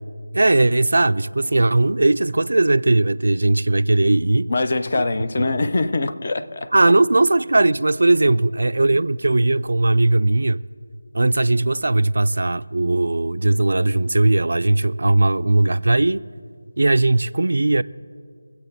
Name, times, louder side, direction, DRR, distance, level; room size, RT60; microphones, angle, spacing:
voice 1, 0.3-4.5 6.7-10.6 11.1-16.3 16.8-17.8, right 2 dB, 70° right, 0.3 m, -18 dB
voice 2, 4.5-6.7 8.3-8.4 8.9-9.0, left 3 dB, 45° left, 0.6 m, -23 dB
24.0 x 8.2 x 4.1 m
figure-of-eight pair, 170°, 0 cm